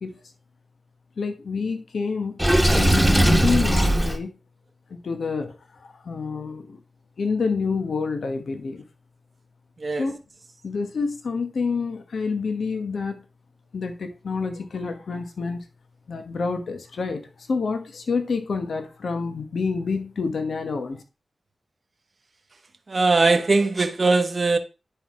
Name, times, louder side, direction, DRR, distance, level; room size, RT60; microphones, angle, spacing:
voice 1, 1.2-2.4 2.7-4.3 4.9-5.5 5.8-6.8 7.2-8.8 10.0-10.1 10.6-13.2 13.7-15.6 16.1-21.0, left 4 dB, 75° left, 1.1 m, -28 dB
Water / Sink (filling or washing), 2.4-4.2, right 1 dB, ahead, 1.3 m, -18 dB
voice 2, 22.9-24.6, right 3 dB, 50° right, 1.0 m, -20 dB
10.0 x 3.8 x 4.8 m
cardioid pair, 50°, 0 cm